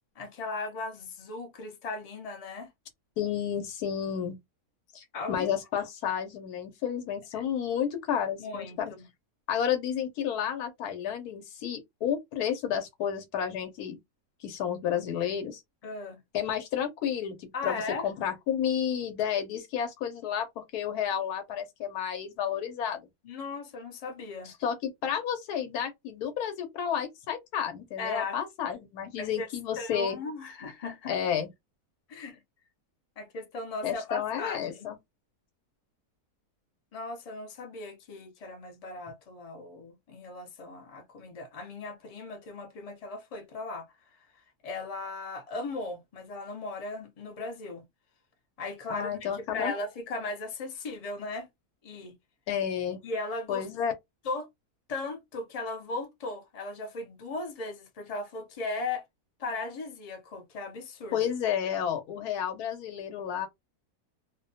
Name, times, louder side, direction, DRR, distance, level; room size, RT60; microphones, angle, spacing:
voice 1, 0.2-2.7 5.1-5.5 7.3-7.4 8.4-9.1 15.8-16.2 17.5-18.1 23.2-24.5 28.0-28.4 29.2-29.5 29.8-31.1 32.1-32.4 33.2-34.9 36.9-43.9 44.6-47.8 48.6-51.5 51.8-52.1 53.0-53.7 54.2-54.5 54.9-59.0 59.4-61.3, left 3 dB, 50° left, 0.4 m, -37 dB
voice 2, 3.2-4.4 4.9-8.9 9.5-14.0 14.4-15.6 16.3-23.0 24.4-30.2 31.1-31.5 33.8-35.0 48.9-49.7 52.5-53.0 53.5-53.9 61.1-63.5, left 8 dB, 75° left, 1.2 m, -31 dB
2.6 x 2.2 x 2.7 m
omnidirectional pair, 1.7 m